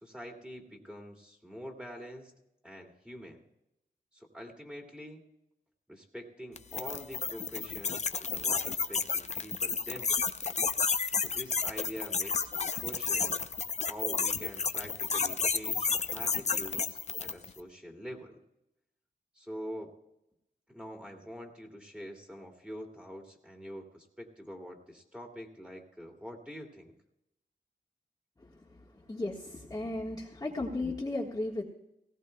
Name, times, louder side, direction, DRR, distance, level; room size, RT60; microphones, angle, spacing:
voice 1, 0.0-2.3 2.6-3.4 4.1-5.2 5.9-10.5 11.2-13.4 13.8-18.4 19.3-19.9 20.7-26.9, equal, 5° right, 1 dB, 2.3 m, -45 dB
sound 1, 6.6-17.5, left 5 dB, 40° left, 0.6 m, -31 dB
voice 2, 29.1-31.6, left 2 dB, 20° left, -4 dB, 1.5 m, -35 dB
18.5 x 16.5 x 2.2 m, 0.84 s
wide cardioid pair, 95°, 17 cm